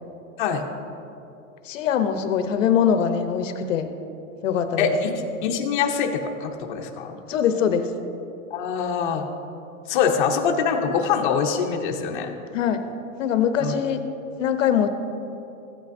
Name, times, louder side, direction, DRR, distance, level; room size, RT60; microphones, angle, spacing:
voice 1, 1.6-3.9 4.4-4.9 7.3-7.9 12.5-12.8 13.2-14.0 14.4-14.9, left 8 dB, 65° left, 8 dB, 0.8 m, -22 dB
voice 2, 4.8-5.1 5.4-7.2 8.5-9.3 9.9-12.3 13.6-13.7, left 6 dB, 35° left, 1 dB, 0.7 m, -24 dB
15.0 x 8.3 x 2.6 m, 2.8 s
supercardioid pair, 175°, 41 cm